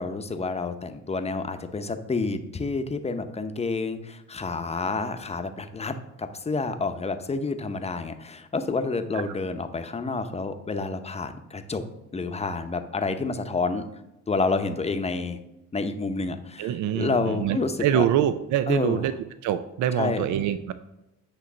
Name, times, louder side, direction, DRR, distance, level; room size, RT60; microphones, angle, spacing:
voice 1, 0.0-11.8 12.1-13.9 14.3-15.4 15.7-18.1 18.7-19.0 20.0-20.2, left 3 dB, 20° left, 8 dB, 0.7 m, -29 dB
voice 2, 16.6-19.2 19.4-20.7, right 10 dB, 75° right, 12 dB, 0.5 m, -25 dB
8.4 x 3.1 x 6.1 m, 0.92 s
cardioid pair, 90°, 30 cm